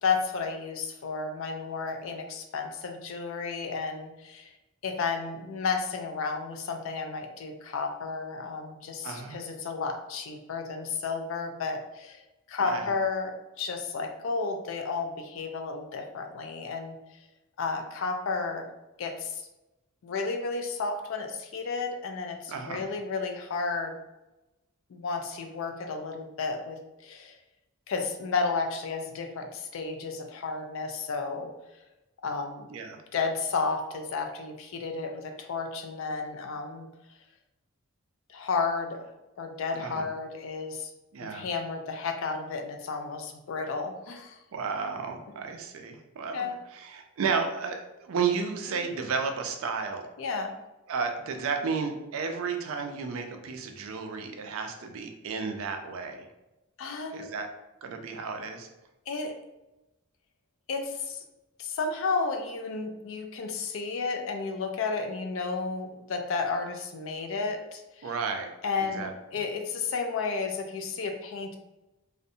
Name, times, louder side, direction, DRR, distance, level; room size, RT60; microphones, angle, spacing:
voice 1, 0.0-4.5 4.8-12.2 12.5-17.0 17.6-18.7 19.0-19.5 20.0-24.0 24.9-27.4 27.9-31.5 32.2-32.7 33.1-36.9 38.3-39.1 39.4-40.9 41.3-44.4 46.3-46.5 48.8-48.9 50.2-50.6 56.8-57.3 59.1-59.3 60.7-61.2 61.6-68.1 68.6-71.5, left 4 dB, 65° left, 5 dB, 0.3 m, -32 dB
voice 2, 9.0-9.4 12.6-12.9 22.5-22.9 32.7-33.0 39.7-40.1 41.1-41.5 44.5-50.1 50.9-56.3 57.1-57.5 57.8-58.7 68.0-68.5 68.8-69.1, right 5 dB, 70° right, 5 dB, 0.4 m, -33 dB
2.5 x 2.1 x 2.6 m, 0.98 s
head